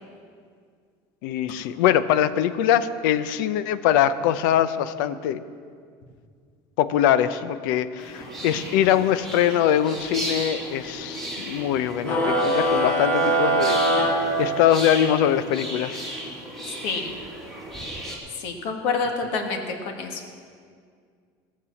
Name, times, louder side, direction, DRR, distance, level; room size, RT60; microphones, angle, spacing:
voice 1, 1.2-5.4 6.8-14.1 14.4-16.1, left 10 dB, 75° left, 13 dB, 0.6 m, -22 dB
sound 1, 8.0-18.2, right 1 dB, ahead, 2.4 m, -35 dB
sound 2, 12.0-15.0, right 1 dB, 15° left, 1.4 m, -22 dB
voice 2, 16.8-17.1 18.4-20.2, left 4 dB, 55° left, 4 dB, 1.6 m, -28 dB
17.0 x 6.8 x 7.1 m, 2.1 s
cardioid pair, 175°, 11 cm